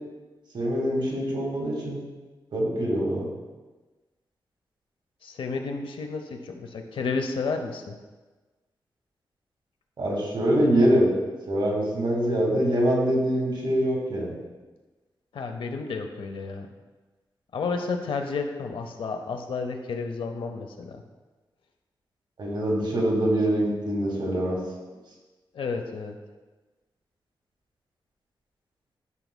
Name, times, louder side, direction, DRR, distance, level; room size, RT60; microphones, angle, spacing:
voice 1, 0.5-2.0 2.5-3.3 10.0-11.1 11.5-14.3 22.4-24.6, right 1 dB, 65° right, -2 dB, 1.9 m, -24 dB
voice 2, 5.2-8.0 15.3-16.7 17.5-21.0 25.5-26.2, left 4 dB, 85° left, 5 dB, 0.7 m, -31 dB
11.0 x 5.9 x 2.2 m, 1.2 s
wide cardioid pair, 115°, 9 cm